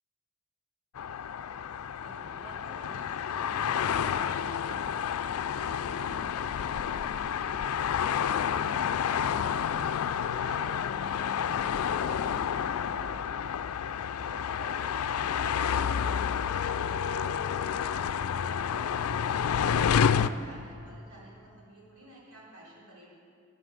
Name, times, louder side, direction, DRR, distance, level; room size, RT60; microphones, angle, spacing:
sound 1, 1.0-20.3, left 8 dB, 85° left, 0.4 m, -29 dB
voice 1, 1.9-7.5 7.9-9.7 10.3-12.3 12.5-13.4 14.1-23.2, right 1 dB, 80° right, -5 dB, 4.2 m, -51 dB
10.5 x 9.8 x 7.5 m, 2.3 s
head